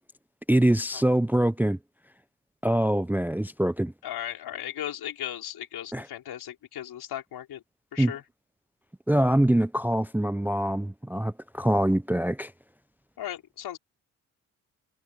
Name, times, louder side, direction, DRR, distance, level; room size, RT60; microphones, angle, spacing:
voice 1, 0.5-1.8 2.6-3.9 5.9-6.1 8.0-8.1 9.1-12.5, right 1 dB, 5° right, 0.7 m, -24 dB
voice 2, 4.0-7.6 7.9-8.2 13.2-13.8, left 11 dB, 70° left, 5.3 m, -36 dB
hypercardioid pair, 50°, 40 cm